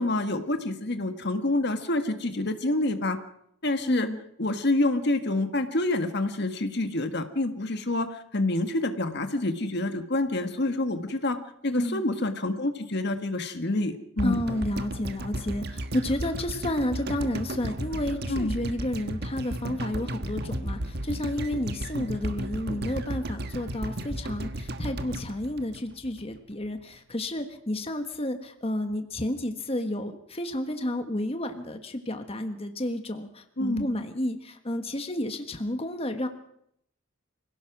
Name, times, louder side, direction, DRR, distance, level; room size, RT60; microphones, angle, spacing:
voice 1, 0.0-3.2 3.6-4.1 4.4-11.4 11.6-14.4 18.3-18.6 33.6-33.9, left 2 dB, 55° left, 8 dB, 1.6 m, -27 dB
voice 2, 3.8-4.2 11.7-12.0 14.2-36.3, left 1 dB, 30° left, 6 dB, 1.5 m, -31 dB
sound 1, 14.2-26.4 26.7-26.8, right 1 dB, 55° right, 1.4 m, -34 dB
25.5 x 17.0 x 6.1 m, 0.72 s
head